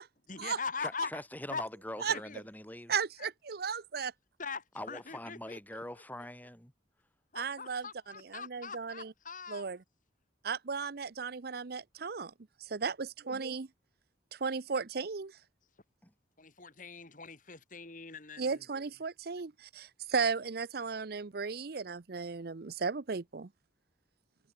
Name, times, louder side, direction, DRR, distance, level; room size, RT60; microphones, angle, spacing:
voice 1, 0.3-1.2 1.5-1.6 2.0-2.5 2.9-3.3 4.4-6.0 7.3-9.6 16.4-18.7, left 5 dB, 45° left, 3.9 m, -42 dB
voice 2, 0.8-2.9 4.7-6.7 16.0-16.1, left 1 dB, 10° left, 6.2 m, -43 dB
voice 3, 2.9-4.1 7.4-7.8 8.3-9.1 9.5-9.8 10.4-12.3 12.6-13.7 14.3-15.3 18.4-23.5, right 5 dB, 55° right, 0.7 m, -35 dB
head